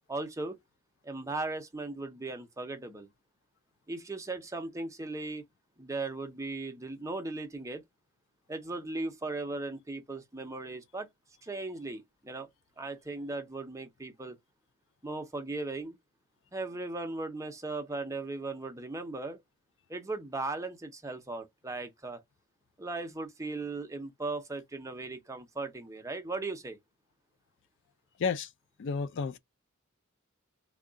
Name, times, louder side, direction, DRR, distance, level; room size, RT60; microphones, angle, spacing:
voice 1, 0.1-0.6 1.0-3.1 3.9-5.4 5.8-7.8 8.5-11.1 11.4-12.5 12.8-14.4 15.0-16.0 16.5-19.4 19.9-22.2 22.8-26.8, right 3 dB, 15° right, 0.6 m, -37 dB
voice 2, 28.8-29.4, left 5 dB, 60° left, 0.4 m, -31 dB
3.6 x 2.3 x 3.7 m
head